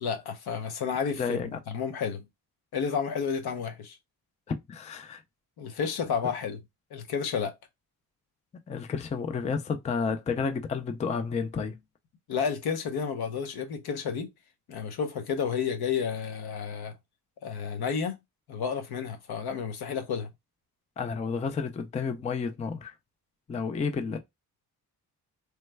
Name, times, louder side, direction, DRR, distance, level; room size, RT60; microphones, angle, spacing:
voice 1, 0.0-2.3 2.7-4.0 5.6-6.6 6.9-7.6 12.3-14.3 14.7-16.9 17.4-18.2 18.5-20.3, left 6 dB, 75° left, 0.8 m, -31 dB
voice 2, 1.2-1.6 4.7-5.2 8.7-11.8 21.0-22.9 23.5-24.2, left 5 dB, 20° left, 0.3 m, -31 dB
3.1 x 2.2 x 3.2 m
wide cardioid pair, 145°, 38 cm